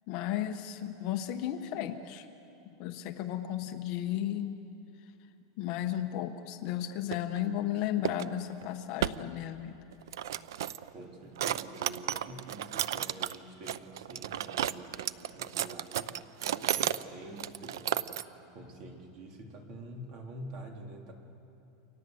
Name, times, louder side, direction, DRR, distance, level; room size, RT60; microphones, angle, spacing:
voice 1, 0.1-2.3 2.8-4.6 5.6-9.8, left 11 dB, 40° left, 7 dB, 1.2 m, -34 dB
sound 1, 7.1-7.4 8.0-8.3 8.6-8.7 9.0-9.2 9.9-10.9 11.4-13.4 13.7-17.0 17.3-18.2, right 11 dB, 90° right, 0.7 m, -33 dB
voice 2, 10.9-16.2 16.6-18.1 18.5-21.1, right 1 dB, 35° right, 2 dB, 3.3 m, -47 dB
29.5 x 25.5 x 7.9 m, 2.8 s
supercardioid pair, 170°, 2 cm